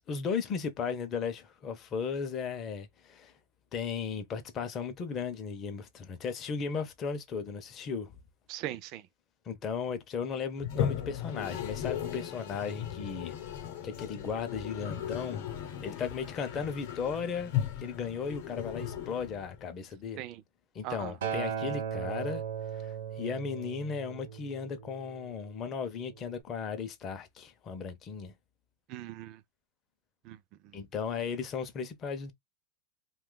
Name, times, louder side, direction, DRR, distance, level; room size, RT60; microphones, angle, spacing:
voice 1, 0.1-3.3 3.7-8.1 9.5-13.3 13.8-15.5 15.8-17.5 17.8-20.2 20.7-22.4 22.7-28.3 30.7-32.3, left 6 dB, 25° left, 0.5 m, -36 dB
voice 2, 8.5-9.1 20.2-20.4 20.8-21.2 28.9-29.4 30.2-30.8, right 13 dB, 35° right, 0.4 m, -40 dB
Toilet flush, 10.6-19.7, left 9 dB, 55° left, 0.8 m, -37 dB
Acoustic guitar, 21.2-25.5 26.3-26.4, right 8 dB, 85° right, 0.8 m, -37 dB
2.8 x 2.3 x 3.7 m
supercardioid pair, 165°, 0 cm